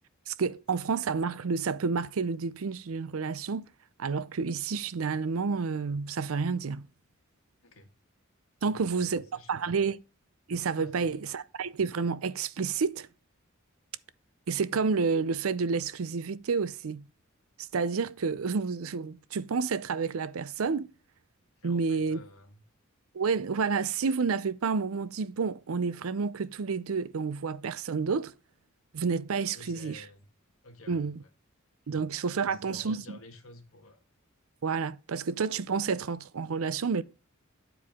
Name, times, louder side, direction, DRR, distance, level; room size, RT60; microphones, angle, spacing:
voice 1, 0.3-3.6 4.0-6.8 8.6-9.2 9.5-10.0 10.5-13.1 14.5-17.0 17.6-20.9 21.6-22.2 23.1-28.3 28.9-30.0 30.9-31.1 31.9-33.2 34.6-37.0, right 5 dB, 80° right, 0.5 m, -30 dB
voice 2, 8.6-9.9 10.8-11.1 21.6-22.6 29.5-30.3 30.6-31.3 31.8-32.0 32.3-34.0, left 2 dB, 80° left, 1.8 m, -51 dB
10.5 x 4.7 x 3.6 m
head